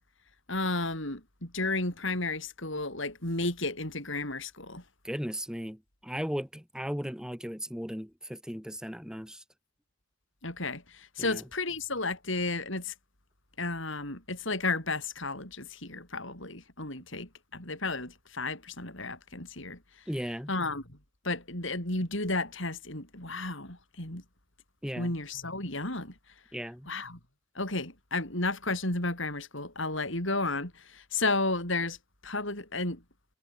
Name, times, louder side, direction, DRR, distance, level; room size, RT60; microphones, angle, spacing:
voice 1, 0.5-4.8 10.4-12.9 13.6-19.8 20.5-21.0 21.2-24.2 25.0-26.1 26.9-27.2 27.6-32.0 32.2-33.0, left 2 dB, 60° left, 7.1 m, -33 dB
voice 2, 5.0-9.4 11.2-11.4 20.1-20.5 24.8-25.1 26.5-26.9, equal, 5° right, 6.2 m, -36 dB
head